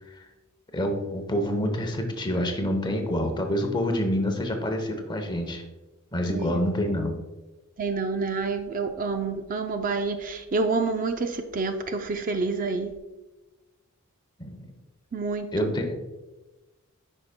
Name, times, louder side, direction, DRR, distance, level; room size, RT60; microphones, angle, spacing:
voice 1, 0.7-5.6 6.1-7.1 14.4-14.7 15.5-15.9, equal, 20° left, 4 dB, 0.8 m, -27 dB
voice 2, 6.3-6.6 7.8-12.9 15.1-15.7, right 4 dB, 40° right, 6 dB, 0.4 m, -28 dB
9.6 x 5.4 x 2.2 m, 1.1 s
head